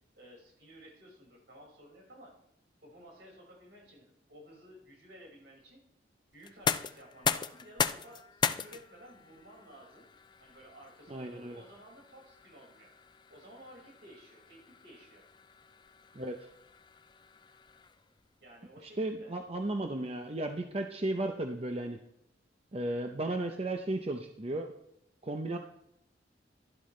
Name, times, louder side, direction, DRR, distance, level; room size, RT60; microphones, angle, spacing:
voice 1, 0.2-2.4 2.8-5.8 6.3-10.1 10.4-12.9 13.3-15.2 18.4-19.3, equal, 75° right, -2 dB, 5.5 m, -54 dB
sound 1, 6.4-18.2, left 6 dB, 25° left, 0.4 m, -38 dB
voice 2, 11.1-11.6 16.1-16.4 19.0-22.0 22.7-24.7 25.2-25.6, right 2 dB, 35° right, 4 dB, 0.7 m, -34 dB
12.5 x 12.0 x 3.2 m, 0.76 s
head